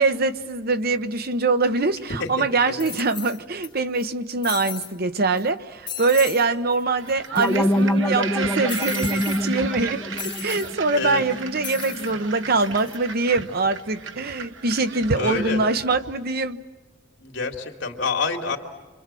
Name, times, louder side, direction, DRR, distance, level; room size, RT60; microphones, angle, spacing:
voice 1, 0.0-16.6, right 3 dB, 55° right, 10 dB, 1.1 m, -23 dB
sound 1, 2.0-2.1 2.8-3.7 4.0-4.1 4.4-4.9 5.4-5.5 5.9-6.4 6.7-6.8 7.1-7.8 8.7-9.4 10.2-10.7 11.6-12.1 12.6-13.0, left 9 dB, 25° left, 2.6 m, -35 dB
sound 2, 7.0-16.3, right 5 dB, 80° right, 1.3 m, -35 dB
sound 3, 7.4-12.3, equal, 5° left, 0.9 m, -26 dB
voice 2, 15.2-15.6 17.2-18.6, left 4 dB, 75° left, 2 dB, 2.8 m, -27 dB
28.5 x 25.0 x 7.7 m, 1.3 s
head